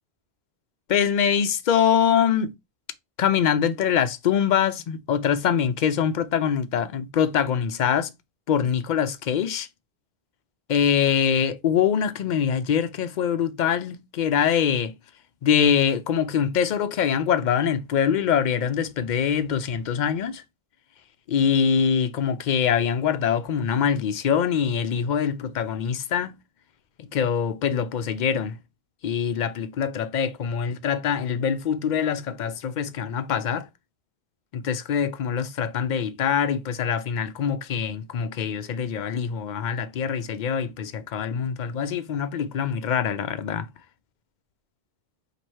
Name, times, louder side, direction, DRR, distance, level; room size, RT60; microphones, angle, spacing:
voice 1, 0.9-2.5 3.2-8.1 8.5-9.7 10.7-14.9 15.4-20.4 21.3-26.3 27.0-28.5 29.0-33.7 34.5-43.7, left 8 dB, 60° left, 0.6 m, -24 dB
3.0 x 2.9 x 4.2 m
omnidirectional pair, 1.0 m